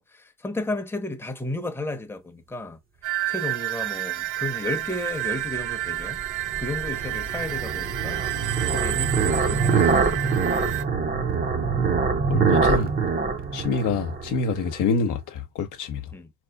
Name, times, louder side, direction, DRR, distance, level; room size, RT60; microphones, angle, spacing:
voice 1, 0.0-2.8 3.3-6.2 6.6-10.3 16.1-16.3, left 2 dB, 10° left, 0.7 m, -33 dB
sound 1, 3.0-10.8, right 15 dB, 80° right, 0.5 m, -30 dB
sound 2, 5.2-14.8, right 5 dB, 30° right, 0.7 m, -25 dB
voice 2, 12.3-12.9 13.5-16.0, left 4 dB, 85° left, 0.8 m, -26 dB
3.8 x 2.9 x 2.2 m
cardioid pair, 90°, 30 cm